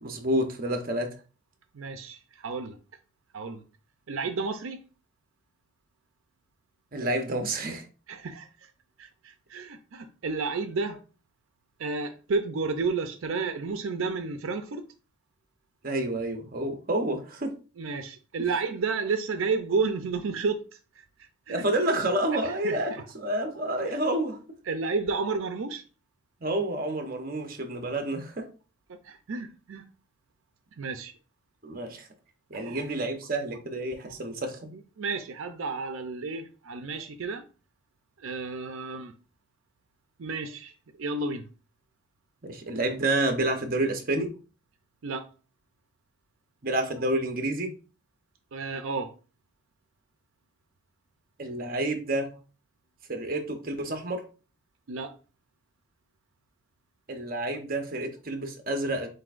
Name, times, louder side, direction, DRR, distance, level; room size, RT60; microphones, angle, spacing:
voice 1, 0.0-1.1 6.9-7.9 15.8-17.5 21.5-24.4 26.4-28.5 31.6-32.1 32.5-34.7 42.4-44.3 46.6-47.7 51.4-52.3 53.1-54.2 57.1-59.1, right 1 dB, 45° right, 0.9 m, -29 dB
voice 2, 1.7-2.8 3.3-3.6 4.1-4.8 8.1-8.7 9.0-11.0 11.8-14.8 17.8-20.6 21.0-21.1 21.5-21.6 22.4-23.0 24.7-25.8 28.9-29.8 30.8-31.1 32.5-32.8 34.7-37.4 38.2-39.1 40.2-41.5 45.0-45.2 48.5-49.1 54.9-55.1, right 4 dB, 85° right, 0.5 m, -31 dB
7.4 x 2.7 x 2.5 m
head